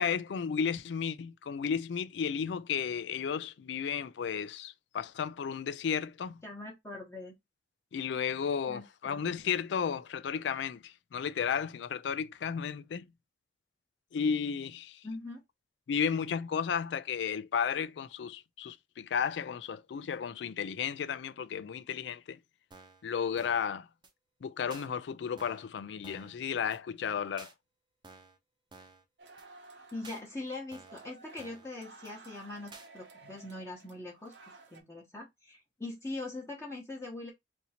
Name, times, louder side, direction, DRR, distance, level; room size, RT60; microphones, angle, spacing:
voice 1, 0.0-6.4 7.9-13.1 14.1-15.0 15.9-22.4 23.0-23.9 24.4-27.5, left 7 dB, 70° left, 0.3 m, -33 dB
voice 2, 6.4-7.3 8.6-9.2 15.0-15.4 29.9-34.3 34.7-37.3, left 2 dB, 15° left, 0.8 m, -42 dB
sound 1, 22.7-23.0 23.4-23.7 24.0-24.1 24.7-24.9 25.4-25.7 26.0-26.4 26.7-26.8 27.4-27.5 28.0-28.4 28.7-29.0 29.4-29.5 30.0-30.2 30.7-31.0 31.4-31.7 32.0-32.1 32.7-32.9, right 3 dB, 25° right, 0.6 m, -52 dB
sound 2, 29.2-34.8, right 3 dB, 70° right, 0.8 m, -54 dB
2.8 x 2.6 x 4.1 m
head